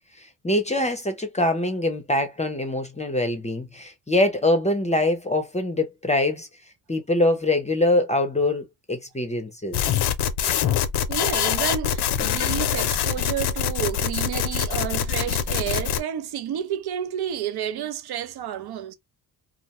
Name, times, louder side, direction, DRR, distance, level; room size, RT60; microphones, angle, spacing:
voice 1, 0.2-6.5 6.9-9.8, left 1 dB, 15° left, 0.6 m, -24 dB
sound 1, 9.7-16.0, left 9 dB, 70° left, 0.6 m, -24 dB
voice 2, 11.1-19.0, right 10 dB, 65° right, 0.6 m, -30 dB
2.4 x 2.2 x 2.8 m
cardioid pair, 80°, 42 cm